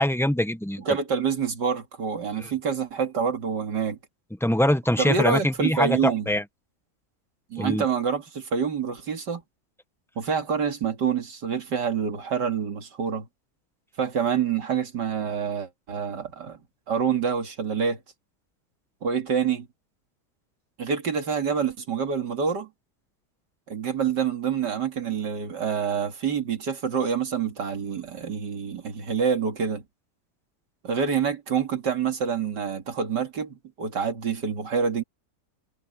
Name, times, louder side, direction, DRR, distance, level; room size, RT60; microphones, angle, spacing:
voice 1, 0.0-0.8 2.4-2.5 4.4-6.4 7.6-7.8, left 1 dB, 5° left, 0.4 m, -23 dB
voice 2, 0.9-4.0 5.0-6.3 7.5-9.4 10.2-13.3 14.0-16.6 16.9-18.0 19.0-19.7 20.8-22.7 23.7-29.8 30.8-35.0, right 6 dB, 85° right, 2.9 m, -27 dB
omnidirectional pair, 1.8 m